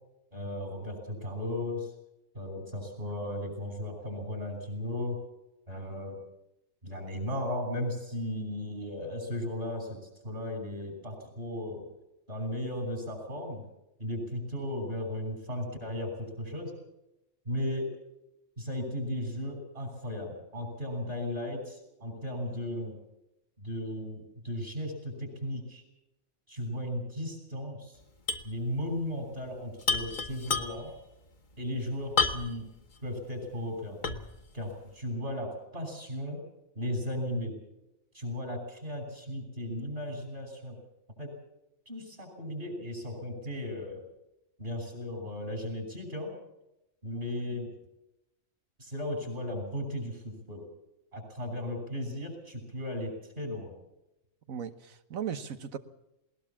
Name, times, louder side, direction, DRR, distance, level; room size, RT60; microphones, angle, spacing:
voice 1, 0.3-1.9 2.3-5.2 5.7-6.2 6.8-11.9 12.3-13.6 14.0-16.7 17.4-17.9 18.6-23.0 23.6-25.8 26.5-28.0 28.4-30.9 31.6-32.6 33.0-34.0 34.5-36.4 36.7-37.6 38.1-40.8 41.2-41.3 41.9-44.0 44.6-46.3 47.0-47.7 48.8-50.7 51.1-53.7, left 1 dB, 45° right, 5 dB, 6.5 m, -36 dB
sound 1, 28.3-28.5 28.8-28.9 29.8-31.0 32.2-32.7 33.2-33.3 34.0-34.4, left 4 dB, 40° left, 1.2 m, -29 dB
voice 2, 54.5-55.8, right 8 dB, 85° right, 11 dB, 1.5 m, -37 dB
20.0 x 19.5 x 7.3 m, 0.89 s
omnidirectional pair, 1.4 m